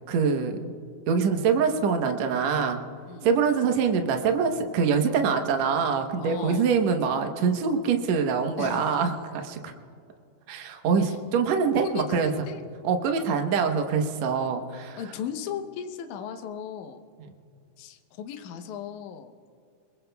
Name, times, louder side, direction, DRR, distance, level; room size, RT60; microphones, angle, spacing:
voice 1, 0.1-0.7 1.1-2.8 3.2-9.7 10.5-12.5 12.8-15.0 17.2-17.3, right 6 dB, 70° right, 4 dB, 1.7 m, -24 dB
voice 2, 6.2-6.7 8.6-9.0 11.0-11.2 11.9-12.6 13.2-13.5 14.8-17.0 17.8-19.3, left 8 dB, 75° left, 6 dB, 1.9 m, -37 dB
28.0 x 22.0 x 2.3 m, 2.4 s
omnidirectional pair, 4.5 m